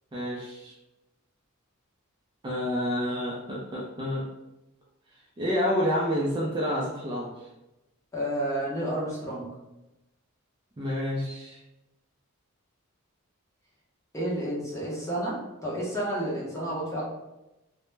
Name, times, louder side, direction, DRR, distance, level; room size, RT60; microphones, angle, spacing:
voice 1, 0.1-0.7 2.4-4.3 5.4-7.3 10.8-11.6, equal, 20° right, -4 dB, 0.3 m, -29 dB
voice 2, 8.1-9.5 14.1-17.0, right 1 dB, 15° left, -5 dB, 0.6 m, -30 dB
2.1 x 2.0 x 3.1 m, 0.97 s
head